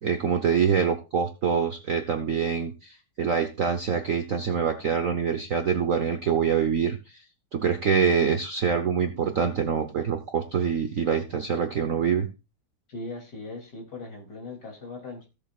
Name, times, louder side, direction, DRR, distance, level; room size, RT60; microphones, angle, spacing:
voice 1, 0.0-7.2 7.5-12.3, right 6 dB, 55° right, 6 dB, 1.0 m, -25 dB
voice 2, 12.9-15.3, left 3 dB, 50° left, 0 dB, 3.5 m, -39 dB
16.5 x 7.1 x 2.4 m, 0.29 s
omnidirectional pair, 2.4 m